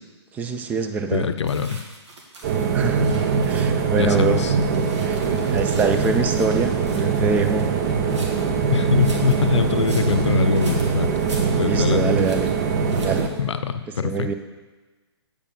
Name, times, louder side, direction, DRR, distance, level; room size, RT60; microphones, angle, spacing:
voice 1, 0.3-1.3 2.7-3.1 3.5-4.4 4.8-7.7 11.7-12.5 13.0-13.3 14.0-14.3, right 5 dB, 10° right, 7 dB, 0.4 m, -25 dB
voice 2, 1.1-1.8 4.0-4.5 8.7-11.1 11.6-12.1 13.4-14.3, left 6 dB, 85° left, 10 dB, 0.6 m, -23 dB
sound 1, 1.4-4.0 4.4-8.5 8.9-11.9 12.2-12.5 12.9-13.4, right 2 dB, 85° right, 2.0 m, -43 dB
sound 2, 2.4-13.3, right 5 dB, 40° right, 0.8 m, -22 dB
8.4 x 5.1 x 5.2 m, 1.2 s
hypercardioid pair, 145°, 14 cm